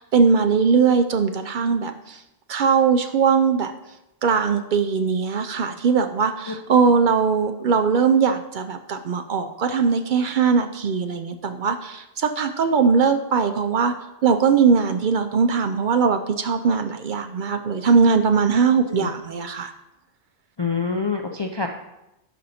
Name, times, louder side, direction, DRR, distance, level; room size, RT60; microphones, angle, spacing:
voice 1, 0.0-2.2 2.5-3.7 4.2-13.9 14.2-19.7, right 5 dB, 60° right, 7 dB, 0.6 m, -20 dB
voice 2, 20.6-21.7, left 4 dB, 40° left, 3 dB, 0.3 m, -26 dB
11.5 x 4.2 x 4.2 m, 0.92 s
omnidirectional pair, 1.1 m